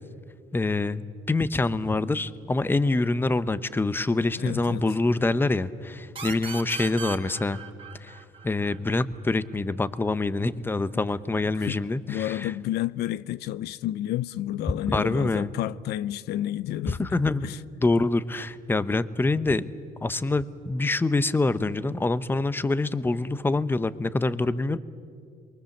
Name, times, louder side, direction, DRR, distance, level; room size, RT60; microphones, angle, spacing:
voice 1, 0.5-7.6 8.0-12.5 14.9-15.5 16.9-17.5 17.8-19.7 20.0-24.8, left 2 dB, 10° left, 0.8 m, -25 dB
voice 2, 4.3-4.8 11.6-11.8 12.1-17.2 17.4-17.6, left 13 dB, 75° left, 0.6 m, -30 dB
sound 1, 6.2-9.6, right 5 dB, 30° right, 3.3 m, -38 dB
28.0 x 23.5 x 7.3 m
cardioid pair, 110°, 17 cm